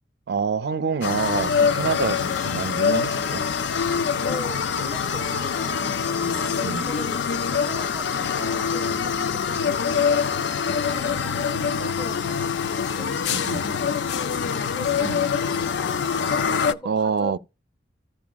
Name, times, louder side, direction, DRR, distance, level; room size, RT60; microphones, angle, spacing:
voice 1, 0.3-3.5 6.6-6.9 13.3-13.7 15.0-15.2 16.9-17.4, right 5 dB, 60° right, 0.4 m, -27 dB
sound 1, 1.0-16.7, left 6 dB, 70° left, 0.4 m, -24 dB
voice 2, 4.2-10.3 10.7-12.4 12.7-17.4, left 2 dB, 25° left, 0.9 m, -41 dB
14.5 x 6.0 x 2.3 m
head